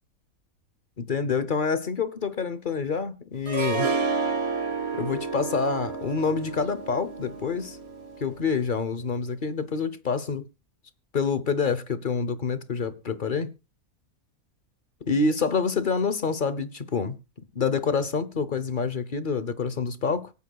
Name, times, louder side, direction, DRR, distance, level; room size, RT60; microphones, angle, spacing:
voice 1, 1.0-3.9 4.9-7.8 8.2-10.4 11.1-13.5 15.0-17.2 17.5-20.3, left 5 dB, 40° left, 0.9 m, -27 dB
Harp, 3.5-8.5, right 5 dB, 45° right, 1.9 m, -30 dB
25.0 x 8.4 x 2.3 m
omnidirectional pair, 1.5 m